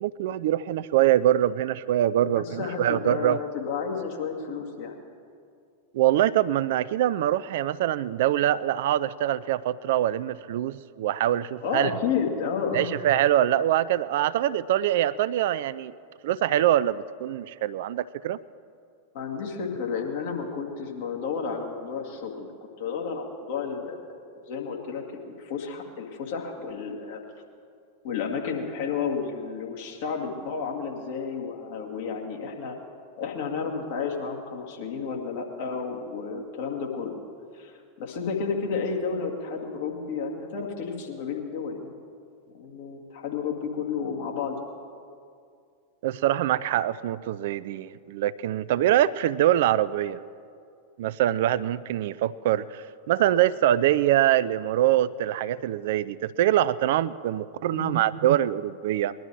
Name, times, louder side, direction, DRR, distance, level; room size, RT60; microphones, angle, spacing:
voice 1, 0.0-3.4 5.9-11.9 12.7-15.9 16.2-18.4 46.0-50.2 51.0-59.1, right 12 dB, 55° right, 17 dB, 0.3 m, -24 dB
voice 2, 2.2-4.9 11.6-12.9 19.1-24.0 24.5-27.2 28.0-32.8 33.2-37.2 37.5-41.9 42.5-44.6 57.7-58.0, left 5 dB, 50° left, 1 dB, 2.1 m, -31 dB
20.5 x 11.5 x 4.7 m, 2.3 s
figure-of-eight pair, 90°, 0 cm